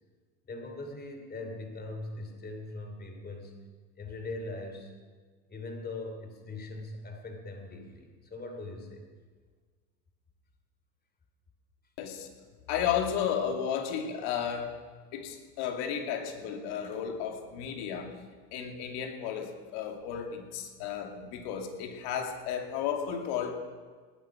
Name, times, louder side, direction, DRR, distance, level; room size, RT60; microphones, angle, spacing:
voice 1, 0.5-3.6 4.0-5.0 5.5-9.0, left 2 dB, 20° left, 5 dB, 3.0 m, -41 dB
voice 2, 12.0-12.3 12.7-14.8 15.1-18.2 18.5-23.5, left 8 dB, 55° left, 4 dB, 2.5 m, -33 dB
19.0 x 9.7 x 6.1 m, 1.5 s
hypercardioid pair, 90°, 48 cm